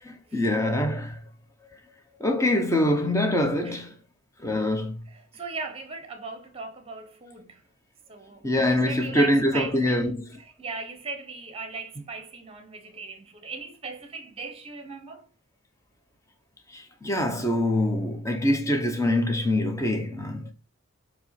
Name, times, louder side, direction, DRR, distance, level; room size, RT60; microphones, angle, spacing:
voice 1, 0.0-1.2 2.2-3.9 4.4-5.0 8.4-10.2 16.7-20.5, left 1 dB, 15° left, 0.9 m, -24 dB
voice 2, 5.1-7.6 8.1-10.1 10.4-15.3, right 4 dB, 25° right, 1.1 m, -38 dB
7.7 x 3.1 x 5.8 m
head